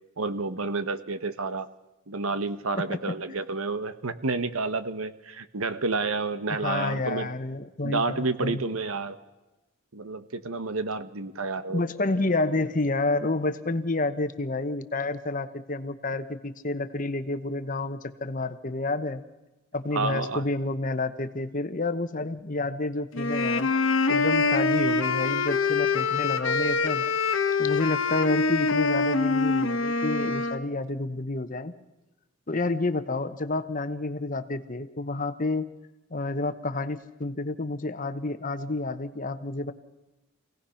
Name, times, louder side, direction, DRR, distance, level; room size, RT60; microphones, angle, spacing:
voice 1, 0.2-1.7 2.1-7.3 7.8-9.2 9.9-11.8 19.9-20.4, right 3 dB, 75° right, 12 dB, 1.2 m, -30 dB
voice 2, 6.5-8.6 11.7-19.2 19.7-23.7 24.1-27.1 27.6-31.7 32.5-35.7 36.1-39.7, left 2 dB, 40° left, 10 dB, 1.0 m, -29 dB
sound 1, 23.1-30.6, left 4 dB, 65° left, 1.5 m, -25 dB
26.5 x 17.5 x 5.8 m, 1.0 s
head